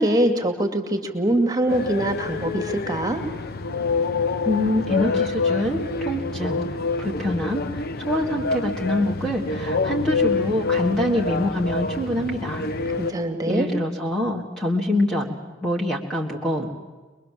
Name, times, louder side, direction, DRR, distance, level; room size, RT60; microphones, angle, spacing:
voice 1, 0.0-3.2 12.9-13.7, right 1 dB, 20° right, 6 dB, 2.3 m, -23 dB
sound 1, 1.7-13.1, left 4 dB, 50° left, 0.8 m, -27 dB
voice 2, 4.5-6.6 7.0-12.7 13.5-15.4 15.6-16.8, left 1 dB, 5° left, -1 dB, 1.8 m, -25 dB
22.5 x 22.5 x 7.5 m, 1.3 s
head